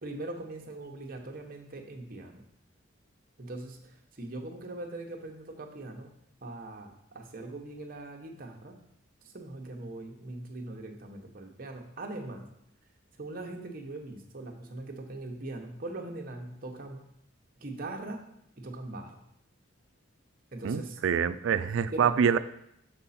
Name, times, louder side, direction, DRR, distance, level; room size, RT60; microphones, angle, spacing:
voice 1, 0.0-2.4 3.4-6.1 6.4-8.8 9.2-12.5 13.2-17.0 17.6-18.3 18.6-19.2 20.5-21.0 21.9-22.4, right 2 dB, 45° right, 2 dB, 0.9 m, -41 dB
voice 2, 20.6-22.4, right 7 dB, 70° right, 14 dB, 0.3 m, -26 dB
6.3 x 5.3 x 4.2 m, 0.76 s
head